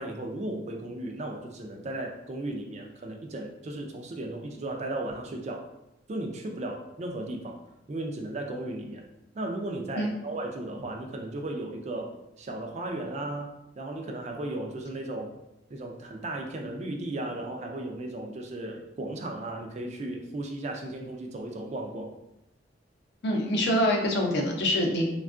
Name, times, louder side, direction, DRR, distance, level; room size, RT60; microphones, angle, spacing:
voice 1, 0.0-5.7 6.1-7.6 7.9-9.1 9.3-15.4 15.7-22.1, right 1 dB, 35° right, 2 dB, 0.3 m, -35 dB
voice 2, 23.2-25.2, left 1 dB, 60° left, 0 dB, 0.6 m, -25 dB
3.4 x 2.2 x 2.4 m, 0.89 s
head